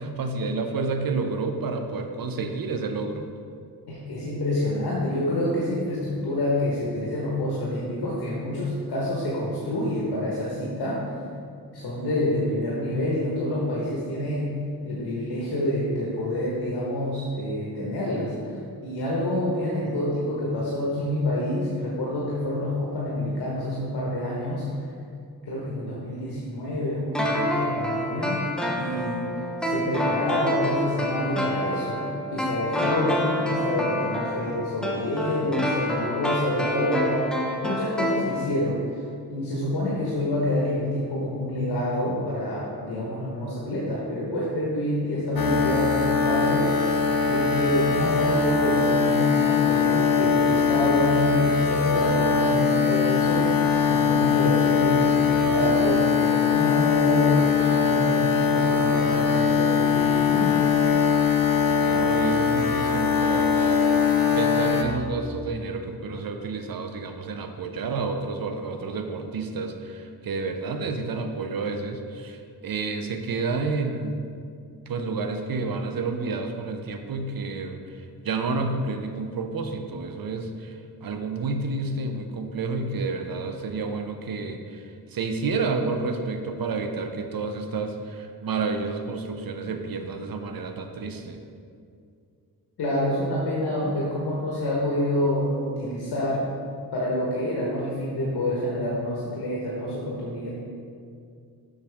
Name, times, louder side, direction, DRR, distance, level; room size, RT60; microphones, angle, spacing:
voice 1, 0.0-3.3 61.8-63.8 64.3-74.2 74.9-91.4, right 3 dB, 60° right, 6 dB, 0.7 m, -30 dB
voice 2, 3.9-11.0 11.7-14.6 14.8-24.8 25.5-28.4 28.7-38.8 39.3-53.6 53.9-60.6 92.8-96.4 96.9-100.5, left 1 dB, 75° left, -5 dB, 1.3 m, -27 dB
sound 1, 27.1-38.8 39.1-39.2, equal, ahead, 0.8 m, -28 dB
sound 2, 45.4-64.8, left 6 dB, 60° left, 0.7 m, -21 dB
7.3 x 6.5 x 3.5 m, 2.3 s
cardioid pair, 90°, 39 cm